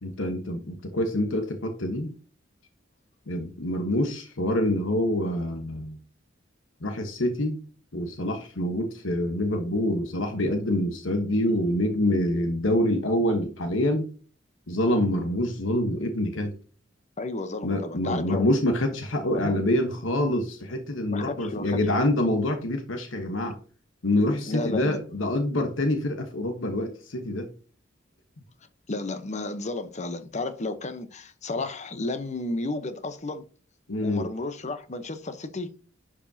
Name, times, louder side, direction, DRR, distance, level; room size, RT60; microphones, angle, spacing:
voice 1, 0.0-2.1 3.3-6.0 6.8-7.6 7.9-14.1 14.7-16.5 17.6-23.6 24.0-27.5 33.9-34.3, left 1 dB, 75° left, 1.2 m, -26 dB
voice 2, 17.2-18.5 19.3-19.6 21.1-22.2 24.5-25.0 28.9-33.5 34.0-35.7, left 2 dB, 35° left, 0.9 m, -32 dB
10.5 x 5.0 x 2.8 m
head